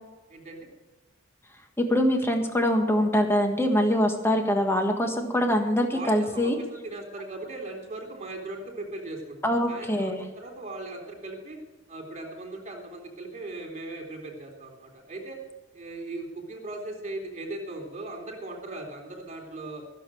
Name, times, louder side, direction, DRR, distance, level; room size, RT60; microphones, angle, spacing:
voice 1, 0.3-0.7 5.9-11.6 11.9-15.4 15.7-19.8, right 2 dB, 35° right, 2 dB, 3.6 m, -38 dB
voice 2, 1.8-6.6 9.4-10.2, equal, 10° left, 4 dB, 1.5 m, -24 dB
15.0 x 7.4 x 7.8 m, 1.1 s
head